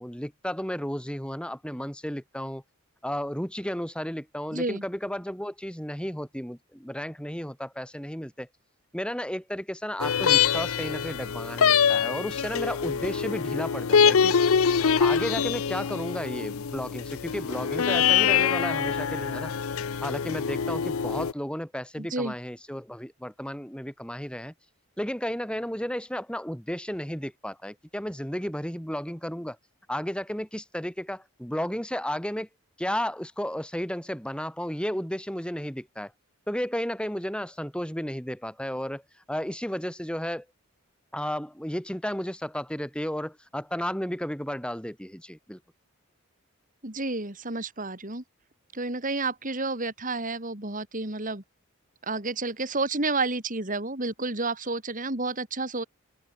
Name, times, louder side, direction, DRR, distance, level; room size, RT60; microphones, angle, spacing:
voice 1, 0.0-2.6 3.0-8.5 8.9-14.4 15.0-19.5 20.0-24.5 25.0-29.6 29.9-32.5 32.8-36.1 36.5-39.0 39.3-40.5 41.1-45.6, equal, 5° left, 5.4 m, -33 dB
voice 2, 4.5-4.8 22.0-22.3 46.8-48.2 48.7-51.4 52.0-55.8, right 3 dB, 40° right, 3.1 m, -30 dB
sound 1, 10.0-21.3, left 7 dB, 75° left, 0.6 m, -24 dB
open air
head